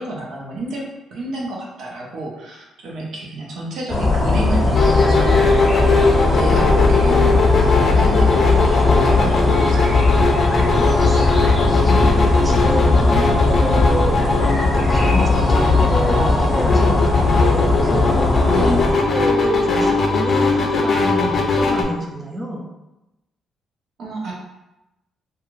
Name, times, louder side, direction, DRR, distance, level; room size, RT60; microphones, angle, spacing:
voice 1, 0.0-5.7 6.0-9.9 18.4-18.8 24.0-24.3, right 2 dB, 70° right, -2 dB, 0.7 m, -30 dB
sound 1, 3.9-18.9, left 3 dB, 15° left, 0.9 m, -18 dB
sound 2, 4.7-21.8, left 3 dB, 50° left, 0.5 m, -20 dB
voice 2, 10.5-11.3 11.8-22.6, equal, 25° right, -1 dB, 0.5 m, -28 dB
2.4 x 2.3 x 3.1 m, 0.96 s
cardioid pair, 90°, 0 cm